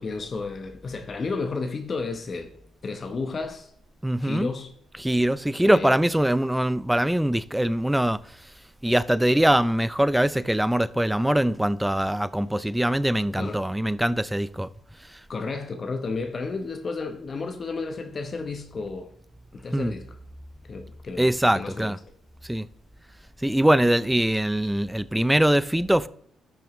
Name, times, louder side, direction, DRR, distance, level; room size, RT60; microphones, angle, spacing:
voice 1, 0.0-2.5 2.8-3.7 4.2-4.7 5.6-6.0 13.4-13.6 15.3-19.1 19.5-20.2 20.7-21.9, left 4 dB, 40° left, 0.9 m, -32 dB
voice 2, 4.0-4.5 5.0-8.2 8.8-14.7 19.7-19.9 21.2-22.0 22.5-22.7 23.4-26.1, right 1 dB, 5° right, 0.4 m, -22 dB
12.0 x 5.9 x 3.1 m
cardioid pair, 90°, 0 cm